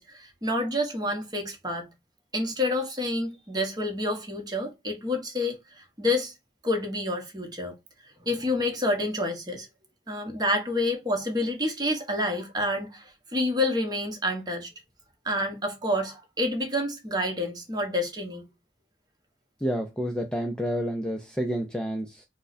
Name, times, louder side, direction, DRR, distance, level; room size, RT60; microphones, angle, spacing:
voice 1, 0.0-1.9 2.3-6.3 6.6-7.7 8.2-9.7 10.1-14.7 15.2-18.4, left 1 dB, 25° right, 1.0 m, -28 dB
voice 2, 19.6-22.2, equal, 5° left, 0.4 m, -29 dB
4.5 x 2.1 x 2.5 m
head